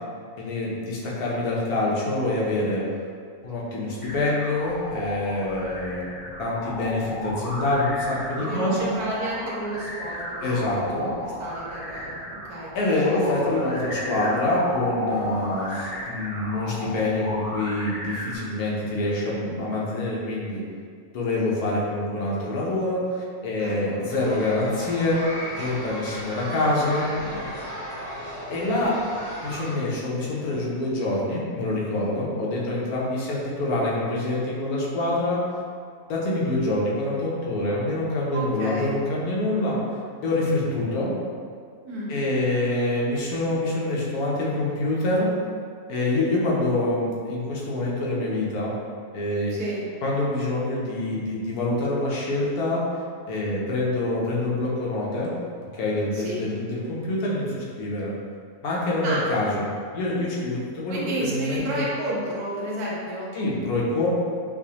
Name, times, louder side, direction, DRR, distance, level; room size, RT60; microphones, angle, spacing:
voice 1, 0.4-2.8 3.4-6.0 6.4-8.9 10.4-11.1 12.7-20.6 21.1-25.2 25.6-27.1 28.5-29.0 29.4-35.4 36.1-39.8 40.2-41.1 42.1-45.3 45.9-48.7 49.1-49.5 50.0-52.8 53.3-55.3 55.7-58.1 58.6-59.6 59.9-61.8 63.3-64.1, left 2 dB, 80° left, -5 dB, 1.2 m, -26 dB
sound 1, 4.0-18.4, left 1 dB, 30° left, 0.7 m, -34 dB
voice 2, 8.4-13.8 15.1-15.4 23.6-24.0 38.3-38.9 41.8-42.2 49.5-49.8 56.1-56.4 59.0-59.3 60.9-63.3, right 1 dB, 80° right, -5 dB, 1.3 m, -32 dB
sound 2, 24.1-29.7, equal, 30° right, 0.9 m, -35 dB
4.8 x 2.1 x 2.8 m, 2.2 s
omnidirectional pair, 1.6 m